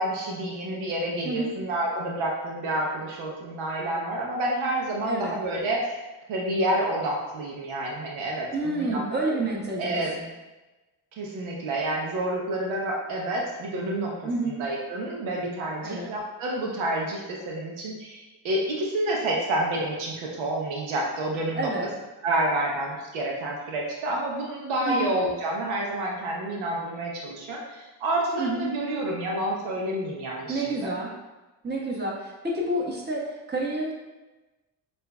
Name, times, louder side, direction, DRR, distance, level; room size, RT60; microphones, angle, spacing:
voice 1, 0.0-5.9 6.3-9.5 9.8-10.1 11.2-14.2 14.4-21.7 22.2-30.9, right 1 dB, 80° right, -1 dB, 0.8 m, -29 dB
voice 2, 8.5-10.3 14.2-14.5 15.8-16.1 21.5-21.9 24.9-25.1 28.4-28.7 30.5-31.1 31.6-33.9, right 2 dB, 20° right, -3 dB, 1.2 m, -29 dB
6.5 x 2.6 x 2.2 m, 1.1 s
supercardioid pair, 55°, 46 cm